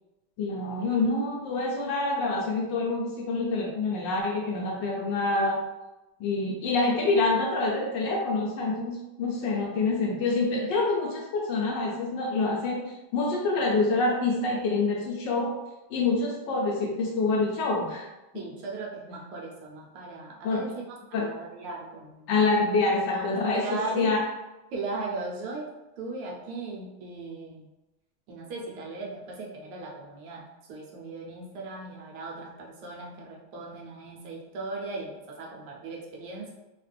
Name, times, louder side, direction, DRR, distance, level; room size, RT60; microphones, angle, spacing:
voice 1, 0.4-5.6 6.2-15.5 15.9-18.1 20.4-20.7 21.1-21.3 22.3-24.2, left 3 dB, 70° left, -1 dB, 1.1 m, -26 dB
voice 2, 18.3-20.7 21.1-22.3 22.9-24.2 24.7-25.7 26.0-27.7 28.3-36.5, right 3 dB, 85° right, -2 dB, 1.7 m, -37 dB
3.7 x 2.4 x 3.3 m, 1.0 s
omnidirectional pair, 2.4 m